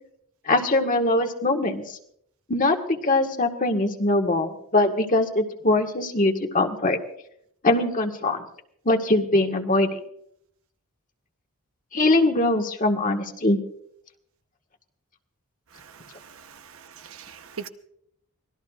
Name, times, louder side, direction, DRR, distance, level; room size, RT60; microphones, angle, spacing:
voice 1, 0.4-2.0 2.5-7.0 7.6-8.4 8.8-10.0 11.9-13.6, left 2 dB, 35° left, 1.6 m, -22 dB
voice 2, 15.7-17.7, right 6 dB, 65° right, 0.9 m, -42 dB
25.0 x 19.0 x 2.4 m
head